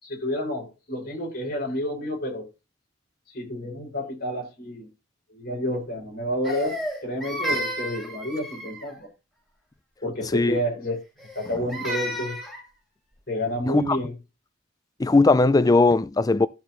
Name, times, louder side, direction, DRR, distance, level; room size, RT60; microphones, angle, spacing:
voice 1, 0.0-2.5 3.3-4.9 5.3-9.1 10.0-11.0 11.3-12.4 13.3-14.2, equal, 50° left, 5.9 m, -30 dB
Crying sobbing, 6.4-9.0 11.2-12.6, equal, ahead, 5.0 m, -32 dB
voice 2, 13.7-14.0 15.0-16.5, left 3 dB, 20° left, 0.4 m, -19 dB
13.0 x 7.0 x 3.1 m
head